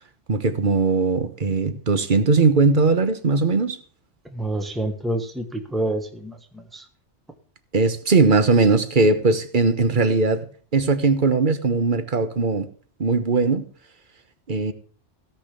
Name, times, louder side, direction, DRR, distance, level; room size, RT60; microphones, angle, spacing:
voice 1, 0.3-3.8 7.7-10.5 10.7-12.7 13.0-13.6 14.5-14.7, right 3 dB, 45° right, 1.3 m, -19 dB
voice 2, 4.3-6.8, right 1 dB, ahead, 1.4 m, -28 dB
17.0 x 5.9 x 6.8 m
omnidirectional pair, 1.2 m